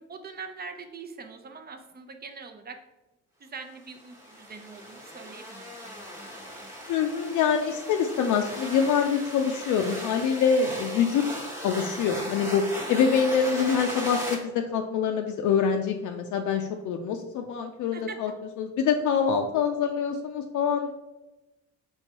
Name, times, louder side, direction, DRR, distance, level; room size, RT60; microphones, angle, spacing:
voice 1, 0.1-2.8 3.4-6.7 12.8-13.0 17.9-18.3, right 4 dB, 30° right, 6 dB, 0.6 m, -43 dB
sound 1, 3.9-14.3, equal, 10° right, 1.1 m, -38 dB
voice 2, 6.9-11.2 11.6-12.6 12.9-18.3 18.6-20.9, left 6 dB, 80° left, 3 dB, 0.4 m, -25 dB
4.5 x 3.4 x 2.9 m, 1.0 s
cardioid pair, 90°, 30 cm